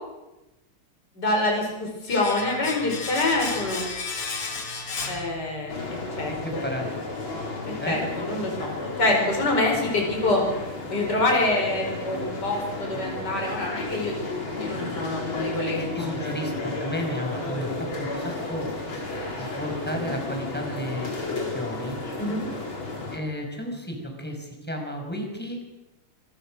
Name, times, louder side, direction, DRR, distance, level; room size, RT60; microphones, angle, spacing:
voice 1, 1.2-3.8 5.1-5.7 6.2-6.6 7.9-8.7 9.0-10.4 10.9-14.1 14.6-16.2 22.2-22.5, left 2 dB, 50° left, 0 dB, 5.8 m, -26 dB
Domestic sounds home sounds, 2.1-5.9 6.2-6.3, left 4 dB, 80° left, 3.8 m, -33 dB
sound 1, 5.7-23.2, left 2 dB, 65° left, 4.9 m, -33 dB
voice 2, 6.3-6.9 7.8-8.0 15.7-18.7 19.4-22.0 23.1-25.6, equal, 5° left, 1 dB, 5.6 m, -33 dB
26.0 x 22.5 x 6.4 m, 1.0 s
omnidirectional pair, 2.4 m